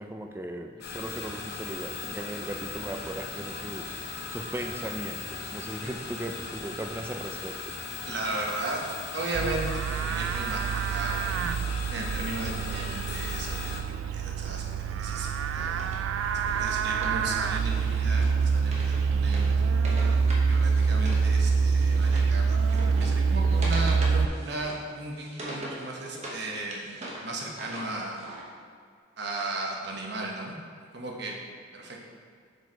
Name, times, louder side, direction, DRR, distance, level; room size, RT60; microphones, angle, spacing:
voice 1, 0.0-7.7, right 1 dB, 10° right, 4 dB, 0.4 m, -38 dB
sound 1, 0.8-13.8, left 4 dB, 55° left, 0.7 m, -38 dB
voice 2, 8.0-8.8 9.1-11.5 11.9-13.7 14.1-15.9 16.6-19.8 20.5-26.9 27.2-28.2 29.2-30.6 30.9-31.3 31.7-32.0, right 2 dB, 55° right, 0 dB, 1.0 m, -35 dB
Livestock farm animals working animals, 9.3-24.3, right 5 dB, 85° right, 0.3 m, -26 dB
Wood, 15.4-21.3 21.5-26.4 26.7-28.4, right 1 dB, 35° right, 1.0 m, -42 dB
6.4 x 4.8 x 4.5 m, 2.2 s
head